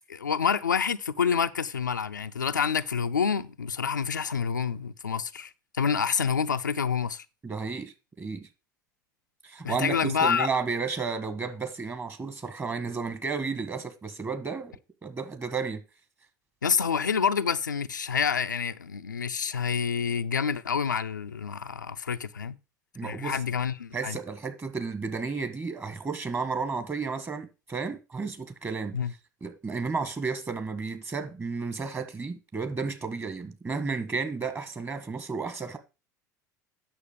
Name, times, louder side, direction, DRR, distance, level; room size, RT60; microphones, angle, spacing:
voice 1, 0.1-7.3 9.6-10.5 16.6-22.6 23.0-24.2 28.9-29.1, left 6 dB, 85° left, 0.4 m, -28 dB
voice 2, 7.4-8.5 9.4-14.7 15.0-15.8 22.9-23.4 23.9-29.0 29.4-35.8, right 4 dB, 25° right, 1.6 m, -32 dB
8.7 x 6.6 x 5.0 m
figure-of-eight pair, 70°, 10 cm